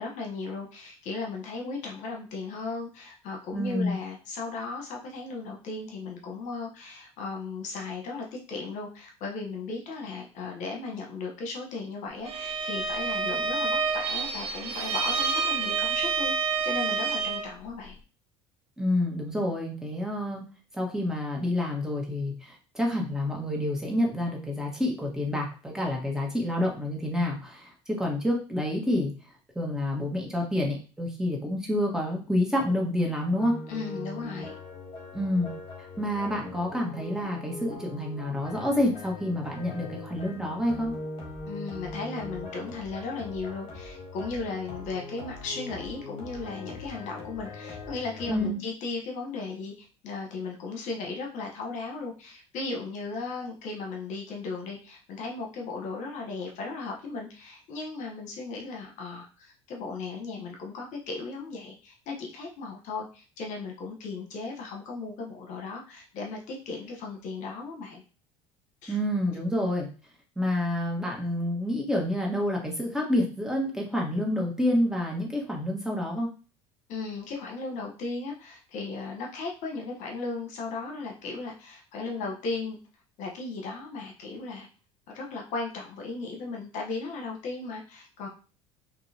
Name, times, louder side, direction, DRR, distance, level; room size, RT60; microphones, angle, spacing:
voice 1, 0.0-16.4 16.6-18.0 33.7-34.6 41.5-68.0 68.8-69.0 76.9-82.8 83.2-84.7 85.1-88.3, left 3 dB, 60° left, 1 dB, 1.1 m, -36 dB
voice 2, 3.5-3.9 18.8-20.4 20.7-29.1 29.5-33.6 35.1-35.5 36.0-40.9 48.3-48.6 68.9-69.9 70.3-76.3, left 1 dB, 5° right, -1 dB, 1.5 m, -28 dB
Bowed string instrument, 12.2-17.5, right 5 dB, 45° right, 0.9 m, -28 dB
sound 1, 33.4-48.5, left 2 dB, 35° left, 2.0 m, -41 dB
5.4 x 2.6 x 2.8 m, 0.35 s
hypercardioid pair, 80°, 14 cm